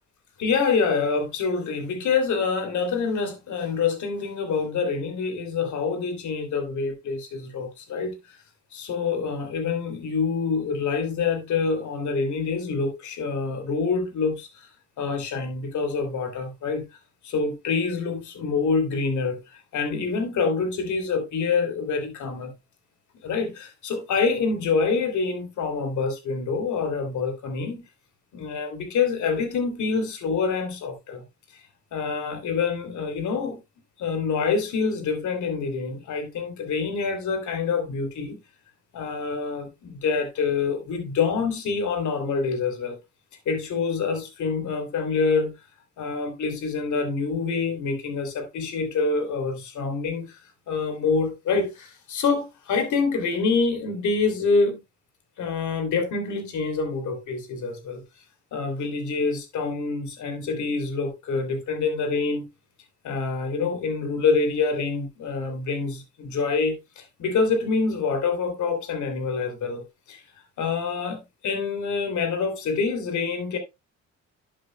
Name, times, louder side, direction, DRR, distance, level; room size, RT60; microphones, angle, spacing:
voice 1, 0.4-8.4 8.7-14.7 15.0-16.8 17.2-22.5 23.2-27.8 28.3-31.2 31.9-33.6 34.0-38.4 38.9-43.0 43.4-45.5 46.0-50.4 50.7-54.8 55.4-58.0 58.5-62.5 63.0-70.2 70.6-73.6, left 4 dB, 75° left, 3.0 m, -26 dB
11.5 x 7.8 x 2.2 m
cardioid pair, 90°, 30 cm